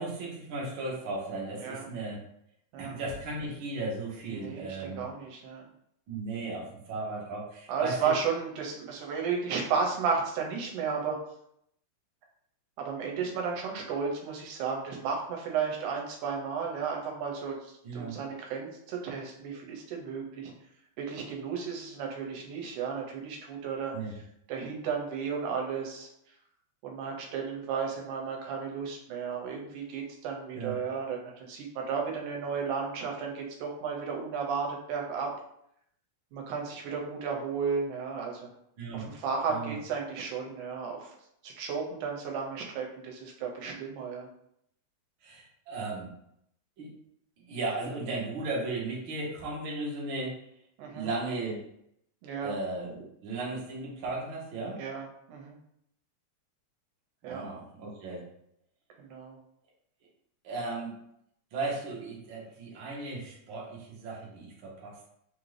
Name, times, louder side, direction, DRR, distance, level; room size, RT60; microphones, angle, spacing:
voice 1, 0.0-2.2 2.8-5.0 6.1-8.1 17.8-18.1 23.9-24.1 30.5-30.7 38.8-39.1 39.5-39.7 45.2-46.1 46.8-46.9 47.4-50.4 50.9-51.6 52.4-54.8 57.2-58.2 60.4-60.9 61.5-65.1, right 2 dB, 60° right, -4 dB, 1.3 m, -36 dB
voice 2, 4.3-5.6 7.7-11.2 12.8-20.5 21.0-24.2 24.5-26.4 26.8-35.3 36.3-38.5 38.9-41.2 41.4-44.3 50.8-51.1 52.2-52.5 54.8-55.6 57.2-57.5 59.0-59.4, right 6 dB, 85° right, 0 dB, 2.1 m, -33 dB
4.7 x 2.6 x 3.2 m, 0.74 s
omnidirectional pair, 3.6 m